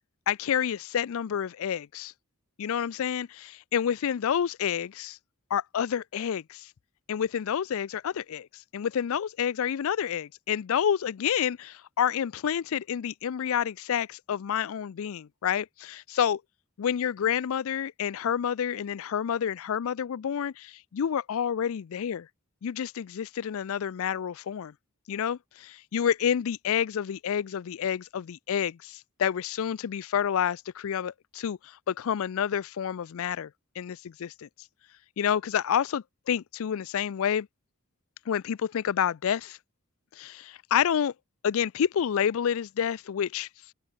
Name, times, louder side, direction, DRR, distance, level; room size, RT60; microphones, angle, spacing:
voice 1, 0.3-2.1 2.6-5.2 5.5-6.7 7.1-16.4 16.8-22.3 22.6-24.7 25.1-33.5 33.8-34.5 35.2-37.5 38.3-39.6 40.2-41.1 41.4-43.5, left 8 dB, 65° left, 0.4 m, -29 dB
open air
head